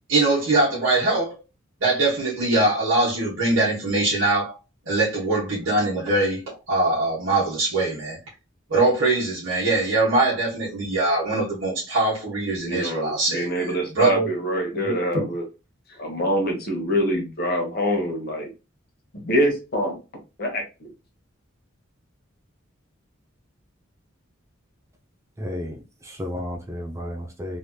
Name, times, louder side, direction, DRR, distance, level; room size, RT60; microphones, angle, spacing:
voice 1, 0.1-1.3 1.8-4.6 4.8-8.2 8.7-14.3 14.8-15.3, right 2 dB, 65° right, 1.2 m, -22 dB
voice 2, 12.7-15.4 16.0-18.5 19.1-20.0 20.4-20.9, equal, 50° left, 1.1 m, -25 dB
voice 3, 25.4-27.6, left 1 dB, 15° right, 0.4 m, -33 dB
3.3 x 2.8 x 2.2 m
head